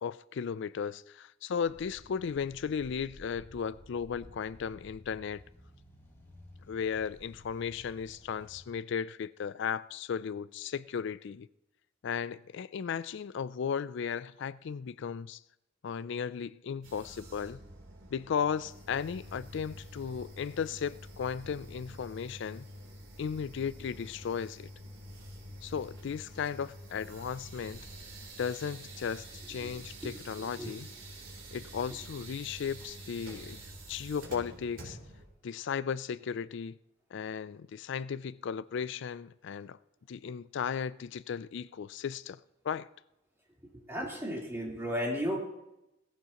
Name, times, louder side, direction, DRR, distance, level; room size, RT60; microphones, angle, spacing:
voice 1, 0.0-5.4 6.7-11.5 12.0-15.4 15.8-17.6 18.1-22.6 23.2-24.7 25.6-27.9 28.4-30.9 31.5-33.6 33.9-35.0 35.4-36.8 37.1-39.8 40.1-42.9, left 7 dB, 65° left, 0.4 m, -35 dB
sound 1, 1.6-8.6, left 1 dB, 15° left, 4.8 m, -55 dB
sound 2, 16.8-35.3, right 1 dB, 85° right, 3.7 m, -48 dB
voice 2, 30.4-30.7 43.7-45.4, equal, 15° right, 3.8 m, -34 dB
17.5 x 15.5 x 3.0 m
head